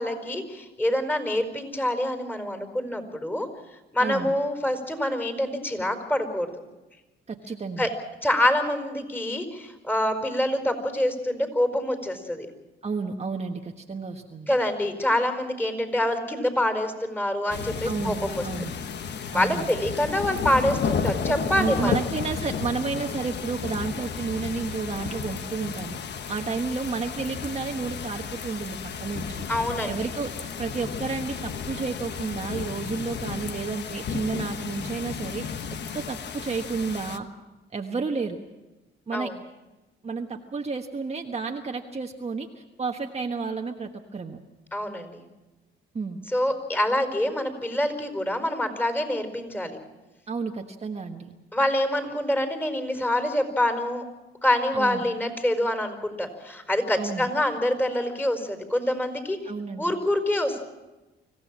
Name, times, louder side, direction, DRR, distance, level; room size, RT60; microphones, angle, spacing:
voice 1, 0.0-3.5 3.9-6.5 7.8-7.9 8.2-12.5 14.5-18.4 19.3-22.0 29.5-29.9 39.1-39.3 44.7-45.2 46.3-49.8 51.5-54.0 54.4-59.4 59.8-60.6, left 1 dB, 10° left, 7 dB, 4.7 m, -26 dB
voice 2, 4.0-4.3 7.3-7.9 12.8-14.6 17.8-18.8 19.3-19.8 21.6-26.0 26.3-29.5 29.9-35.4 35.9-37.3 37.7-38.4 39.1-39.3 40.0-44.4 45.9-46.2 50.3-51.4 54.7-55.1 57.0-57.3 59.4-59.9, right 4 dB, 30° right, 3 dB, 1.4 m, -31 dB
sound 1, 17.5-37.2, left 6 dB, 60° left, 1.3 m, -33 dB
25.5 x 16.0 x 7.5 m, 1.1 s
cardioid pair, 90°, 20 cm